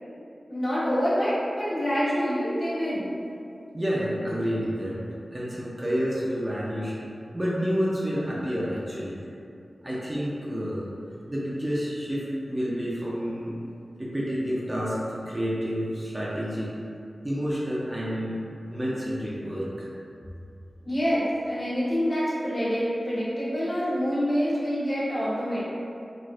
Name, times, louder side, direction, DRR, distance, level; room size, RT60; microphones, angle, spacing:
voice 1, 0.5-3.1 20.8-25.6, equal, 40° left, -11 dB, 1.4 m, -26 dB
voice 2, 3.7-5.0 5.3-7.0 7.3-9.2 9.8-10.9 11.3-13.6 14.0-16.7 17.2-18.4 18.7-19.9, equal, 20° right, -7 dB, 0.5 m, -29 dB
4.0 x 2.4 x 2.4 m, 2.5 s
wide cardioid pair, 60°, 0 cm